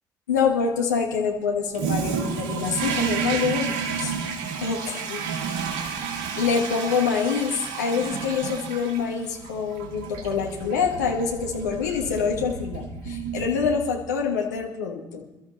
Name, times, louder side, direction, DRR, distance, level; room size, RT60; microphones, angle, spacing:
voice 1, 0.3-4.1 4.6-5.2 5.7-6.0 6.4-15.2, left 6 dB, 75° left, 0 dB, 1.6 m, -26 dB
Toilet flush, 1.7-14.1, right 6 dB, 65° right, 2.1 m, -31 dB
28.0 x 13.0 x 3.2 m, 1.0 s
figure-of-eight pair, 45°, 9 cm